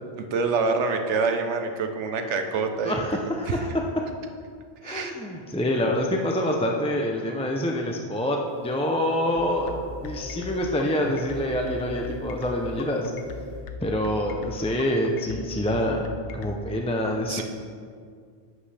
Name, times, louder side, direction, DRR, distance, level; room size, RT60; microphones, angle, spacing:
voice 1, 0.2-3.0 3.5-3.6 4.8-5.1 17.3-17.4, right 4 dB, 90° right, 5 dB, 1.1 m, -26 dB
voice 2, 2.8-3.7 4.8-9.7 10.0-13.1 13.8-16.0 16.3-17.4, left 1 dB, 10° left, 1 dB, 0.4 m, -26 dB
sound 1, 8.5-13.9, left 1 dB, 35° left, 1.0 m, -41 dB
sound 2, 9.4-16.6, left 5 dB, 85° left, 1.0 m, -38 dB
11.0 x 8.0 x 3.4 m, 2.1 s
omnidirectional pair, 1.2 m